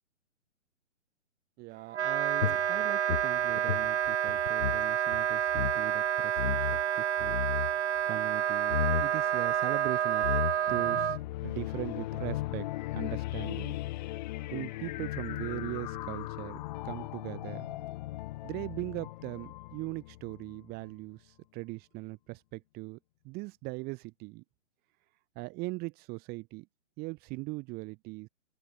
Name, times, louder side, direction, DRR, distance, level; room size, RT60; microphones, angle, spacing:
voice 1, 1.6-10.4 10.7-11.2 11.4-12.7 12.9-13.8 14.5-17.8 18.4-23.0 23.2-24.4 25.3-26.7 27.0-28.3, right 24 dB, 25° right, 4.9 m, -40 dB
Wind instrument woodwind instrument, 1.9-11.2, right 9 dB, 60° right, 1.5 m, -29 dB
sound 1, 2.4-4.8 5.1-5.2 5.5-5.8 6.4-6.8 7.2-7.7 8.7-9.1 9.9-10.0 10.2-10.8, left 8 dB, 75° left, 1.1 m, -32 dB
welcome to a new world, 10.7-20.9, left 17 dB, 35° left, 2.9 m, -38 dB
open air
hypercardioid pair, 145°, 38 cm